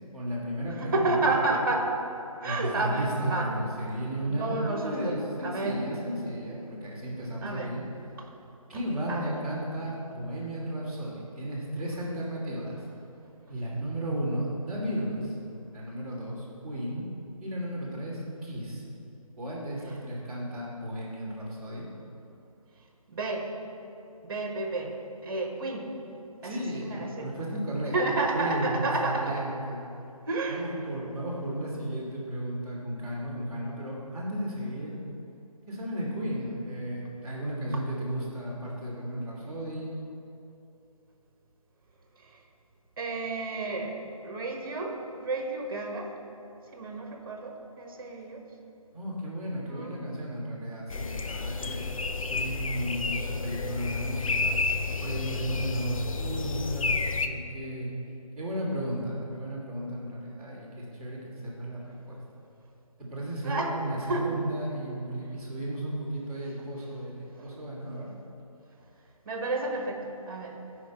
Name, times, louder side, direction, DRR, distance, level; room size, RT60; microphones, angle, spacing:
voice 1, 0.1-1.5 2.4-7.8 8.7-12.8 13.5-15.4 15.7-17.1 17.4-18.8 19.4-21.9 26.4-29.8 30.5-35.0 35.7-39.9 48.9-51.9 52.3-54.6 55.0-57.9 58.4-62.4 63.0-68.1, right 1 dB, ahead, -16 dB, 1.6 m, -34 dB
voice 2, 0.8-1.9 2.4-3.5 4.3-5.2 5.4-5.8 7.4-7.7 8.2-8.3 9.1-9.3 23.1-23.5 24.2-24.9 25.2-25.9 26.4-27.3 27.9-29.5 30.3-30.6 43.0-43.9 44.2-46.1 46.7-48.4 49.7-49.9 63.4-63.7 64.1-64.3 67.4-67.6 69.2-70.0 70.3-70.5, right 2 dB, 40° right, 2 dB, 1.3 m, -30 dB
sound 1, 50.9-57.3, left 4 dB, 65° left, 0.6 m, -31 dB
13.0 x 5.0 x 4.5 m, 2.8 s
figure-of-eight pair, 160°, 19 cm